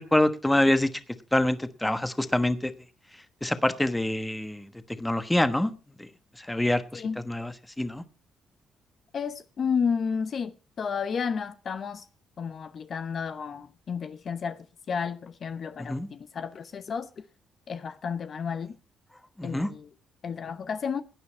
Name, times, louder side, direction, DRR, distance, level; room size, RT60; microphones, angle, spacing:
voice 1, 0.1-0.9 1.3-2.7 3.4-4.7 5.0-5.7 6.0-6.1 6.4-8.0 15.9-16.1 19.4-19.7, left 1 dB, 10° left, 1.1 m, -25 dB
voice 2, 9.1-12.0 12.4-17.1 17.7-18.8 19.4-19.9 20.2-21.0, left 6 dB, 50° left, 0.8 m, -32 dB
16.0 x 9.6 x 4.3 m
cardioid pair, 90°, 0 cm